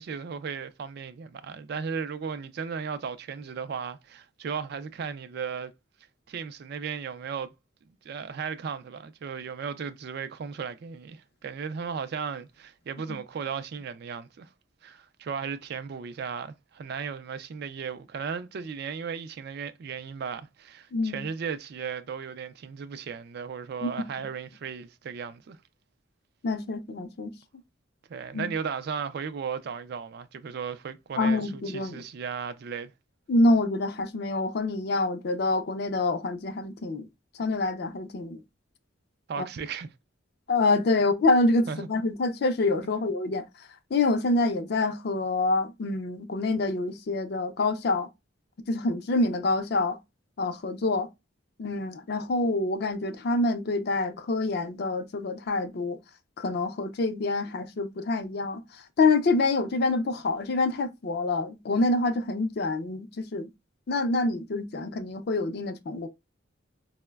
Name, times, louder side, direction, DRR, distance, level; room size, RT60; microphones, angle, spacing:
voice 1, 0.0-5.7 6.3-7.5 8.0-14.5 14.8-25.6 28.1-32.9 39.3-39.9 41.0-41.1 41.7-41.9 42.8-43.1, right 6 dB, 55° right, 0.3 m, -36 dB
voice 2, 20.9-21.2 23.8-23.9 26.4-27.3 28.3-28.5 31.2-32.0 33.3-37.1 37.4-38.4 39.4-39.5 40.5-43.4 43.9-48.1 48.7-50.0 50.4-51.1 51.6-56.0 56.4-58.6 59.0-63.5 63.9-66.1, left 2 dB, 50° left, 0.4 m, -26 dB
4.5 x 2.1 x 2.2 m
head